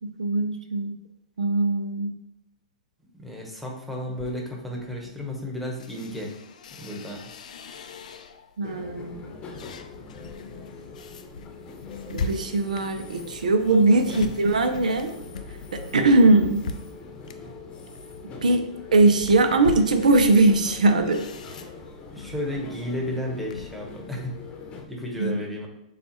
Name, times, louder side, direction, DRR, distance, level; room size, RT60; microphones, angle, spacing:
voice 1, 0.0-0.9 1.4-2.1 8.6-9.3 12.1-15.1 15.9-16.7 18.4-18.6 18.9-21.2 25.2-25.4, right 2 dB, 80° right, 7 dB, 0.6 m, -20 dB
voice 2, 3.1-6.4 6.8-7.3 14.1-14.2 22.1-24.4 24.9-25.7, left 1 dB, ahead, -2 dB, 1.1 m, -33 dB
sound 1, 4.1-8.6 9.0-23.8, left 4 dB, 75° left, 0.4 m, -40 dB
sound 2, 8.6-24.8, left 4 dB, 25° left, 0.8 m, -42 dB
6.9 x 2.4 x 3.0 m, 0.80 s
hypercardioid pair, 120°, 4 cm